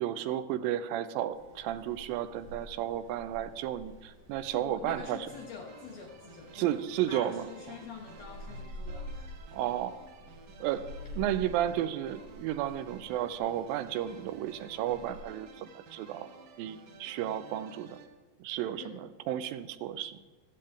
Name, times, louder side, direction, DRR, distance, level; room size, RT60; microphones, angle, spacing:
voice 1, 0.0-5.3 6.5-7.5 9.5-10.0 10.6-16.3 16.6-18.0 18.4-20.2, right 11 dB, 85° right, 13 dB, 2.3 m, -33 dB
sound 1, 1.3-15.2, equal, 40° right, 6.7 m, -48 dB
voice 2, 4.5-9.4 18.7-19.0, left 6 dB, 70° left, 1 dB, 1.7 m, -46 dB
sound 2, 5.3-18.1, right 4 dB, 65° right, 1.8 m, -53 dB
15.5 x 13.5 x 3.5 m, 1.2 s
omnidirectional pair, 4.1 m